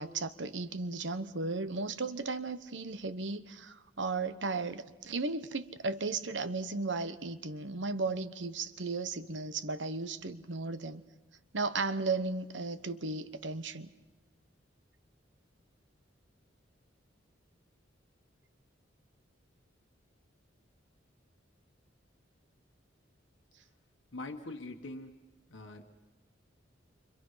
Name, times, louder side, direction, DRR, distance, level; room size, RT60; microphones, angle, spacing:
voice 1, 0.0-11.0 11.5-13.9, right 3 dB, 70° right, 12 dB, 1.1 m, -35 dB
voice 2, 24.1-25.2 25.5-25.8, left 2 dB, 80° left, 4 dB, 1.4 m, -43 dB
29.0 x 25.5 x 5.7 m, 1.1 s
head